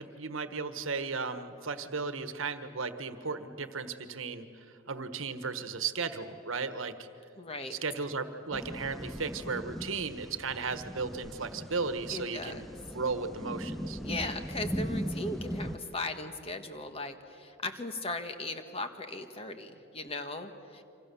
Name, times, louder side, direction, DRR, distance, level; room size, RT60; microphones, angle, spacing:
voice 1, 0.0-4.5 4.9-7.1 7.7-12.7 12.9-14.0, right 4 dB, 75° right, 10 dB, 1.4 m, -35 dB
voice 2, 7.4-7.8 12.1-12.6 14.0-20.8, left 2 dB, 30° left, 7 dB, 1.5 m, -38 dB
sound 1, 8.5-15.8, equal, ahead, 0.6 m, -39 dB
27.5 x 26.0 x 7.0 m, 2.8 s
head